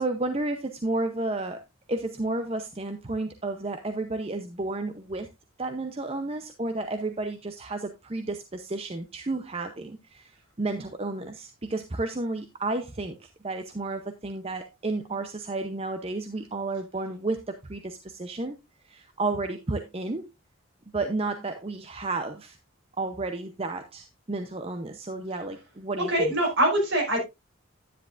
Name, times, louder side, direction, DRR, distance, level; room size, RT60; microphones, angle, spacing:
voice 1, 0.0-1.6 1.9-5.3 5.6-18.6 18.8-20.3 20.9-22.6 23.0-26.3, right 2 dB, 30° right, 7 dB, 0.7 m, -32 dB
voice 2, 26.1-27.2, right 1 dB, 60° right, 0 dB, 5.5 m, -23 dB
10.0 x 9.9 x 2.5 m, 0.22 s
head